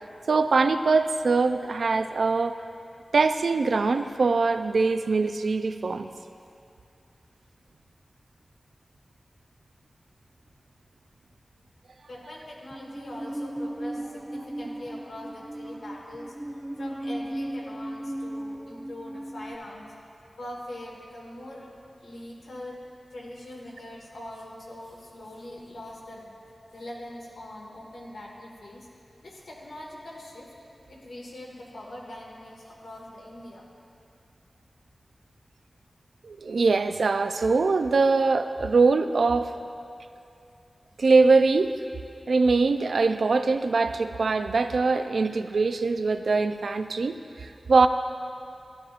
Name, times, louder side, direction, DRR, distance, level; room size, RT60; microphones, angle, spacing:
voice 1, 0.3-2.6 3.1-6.1 36.2-39.5 41.0-41.7 42.3-47.9, right 4 dB, 85° right, 9 dB, 0.3 m, -22 dB
voice 2, 12.1-16.3 16.8-19.9 20.3-21.7 22.0-22.8 23.1-26.3 26.7-28.9 29.2-30.5 30.9-33.6, left 1 dB, 90° left, -3 dB, 1.7 m, -42 dB
Musical instrument, 12.7-19.6, right 1 dB, 15° right, 0.4 m, -36 dB
12.5 x 11.5 x 2.5 m, 2.5 s
wide cardioid pair, 55°, 0 cm